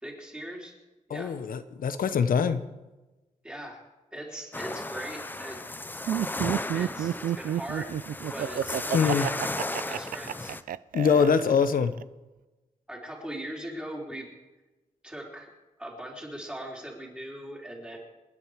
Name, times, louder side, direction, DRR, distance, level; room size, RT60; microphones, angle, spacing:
voice 1, 0.0-0.7 1.1-1.4 3.4-3.8 4.1-5.6 6.7-7.9 8.3-10.6 11.2-11.4 12.9-14.3 15.0-15.5 15.8-18.0, right 1 dB, 5° right, -1 dB, 3.5 m, -40 dB
voice 2, 1.1-2.6 8.9-9.3 10.9-11.9, left 6 dB, 80° left, 11 dB, 1.1 m, -23 dB
sound 1, 4.5-10.6, left 2 dB, 15° left, 0.6 m, -35 dB
Laughter, 6.1-12.0, right 11 dB, 80° right, 0.4 m, -30 dB
28.0 x 10.0 x 4.9 m, 1.1 s
wide cardioid pair, 140°, 14 cm